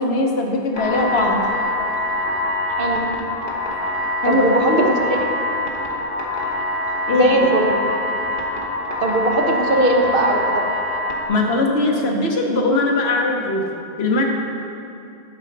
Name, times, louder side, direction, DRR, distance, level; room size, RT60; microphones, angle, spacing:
voice 1, 0.0-1.4 4.2-4.9 7.1-7.4 11.3-13.6 14.0-14.2, left 2 dB, 80° left, 1 dB, 1.2 m, -20 dB
sound 1, 0.7-11.3, left 1 dB, 55° left, 1.3 m, -24 dB
voice 2, 4.2-5.2 7.1-7.7 9.0-10.6, right 1 dB, 60° right, 1 dB, 1.0 m, -19 dB
9.2 x 7.5 x 3.9 m, 2.7 s
omnidirectional pair, 1.1 m